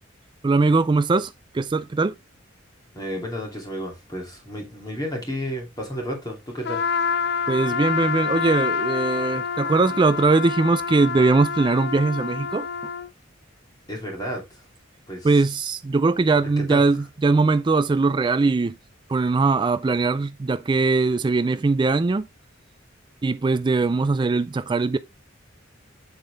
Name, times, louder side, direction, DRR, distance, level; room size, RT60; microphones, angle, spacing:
voice 1, 0.4-2.1 7.5-12.7 15.2-18.7 19.1-22.2 23.2-25.0, right 3 dB, 25° right, 0.3 m, -21 dB
voice 2, 2.9-6.9 13.9-14.6 15.1-15.4 16.3-17.1, equal, 20° left, 2.7 m, -32 dB
Trumpet, 6.6-13.1, left 6 dB, 60° left, 0.6 m, -27 dB
7.3 x 7.3 x 3.3 m
head